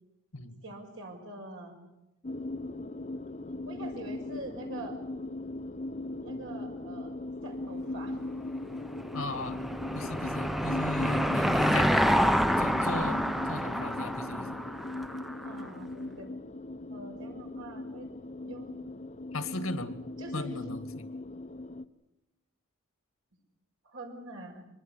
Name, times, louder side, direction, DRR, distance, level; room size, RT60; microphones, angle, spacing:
voice 1, 0.6-1.8 3.7-5.0 5.9-7.2 7.4-8.2 13.6-13.7 15.4-16.3 16.9-18.1 18.4-18.8 20.2-20.7 23.8-24.6, right 2 dB, 70° right, 3 dB, 6.3 m, -44 dB
sound 1, 2.2-21.8, left 2 dB, 35° left, 0.8 m, -39 dB
Car passing by / Engine, 8.7-15.5, equal, ahead, 0.8 m, -28 dB
voice 2, 9.1-9.6 9.9-12.0 12.6-14.6 19.3-20.0 20.3-21.1, left 2 dB, 90° left, 9 dB, 2.1 m, -37 dB
25.0 x 20.5 x 8.4 m, 0.95 s
head